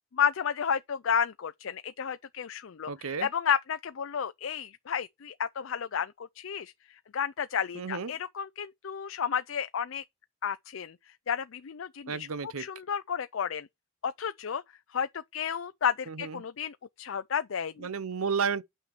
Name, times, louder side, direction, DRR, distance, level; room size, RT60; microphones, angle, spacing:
voice 1, 0.1-10.0 10.4-11.0 11.3-12.3 12.6-13.7 14.0-14.6 14.9-17.9, left 7 dB, 60° left, 0.5 m, -32 dB
voice 2, 2.9-3.3 7.7-8.1 12.1-12.7 16.1-16.4 17.8-18.6, right 5 dB, 80° right, 0.7 m, -32 dB
8.8 x 5.6 x 5.0 m
head